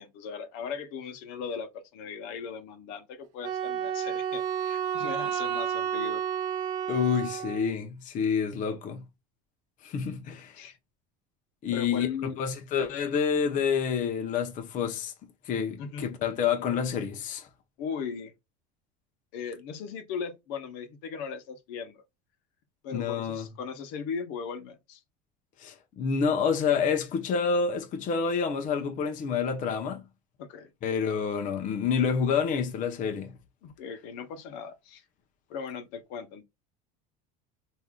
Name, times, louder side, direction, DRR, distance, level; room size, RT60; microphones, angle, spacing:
voice 1, 0.0-6.2 10.6-10.8 11.7-12.4 15.8-16.1 17.8-18.3 19.3-22.0 22.8-25.0 30.4-30.7 33.6-35.0 35.5-36.4, left 6 dB, 70° left, 0.9 m, -38 dB
Wind instrument woodwind instrument, 3.4-7.7, right 9 dB, 75° right, 0.9 m, -31 dB
voice 2, 6.9-9.0 9.8-10.6 11.6-15.1 15.4-17.5 22.9-23.5 25.6-30.0 30.8-33.3, left 6 dB, 40° left, 0.7 m, -28 dB
3.5 x 2.7 x 2.2 m
supercardioid pair, 115°, 20 cm